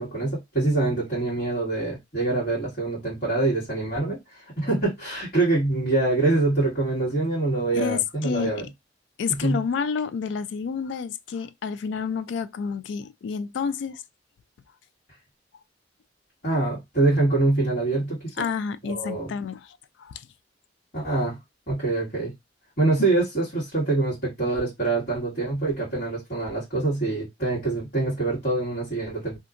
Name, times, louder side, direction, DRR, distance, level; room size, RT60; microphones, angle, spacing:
voice 1, 0.0-8.7 9.4-9.6 16.4-18.5 18.9-19.3 20.9-21.4 21.7-22.3 22.8-29.4, right 2 dB, 50° left, 1.8 m, -25 dB
voice 2, 7.7-8.6 9.2-14.0 18.4-20.3 23.0-23.1, left 6 dB, 70° left, 0.3 m, -29 dB
2.8 x 2.4 x 2.4 m
head